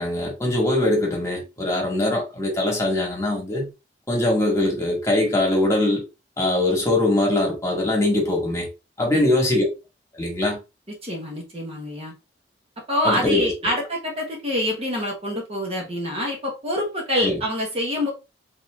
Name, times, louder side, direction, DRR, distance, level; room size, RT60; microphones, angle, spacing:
voice 1, 0.0-3.7 4.1-6.0 6.4-8.7 9.0-9.6 10.2-10.6 13.0-13.8 17.2-17.4, left 1 dB, 15° left, 1.6 m, -22 dB
voice 2, 10.9-12.1 12.9-18.1, left 1 dB, 35° right, 1.3 m, -26 dB
4.3 x 3.8 x 2.5 m
head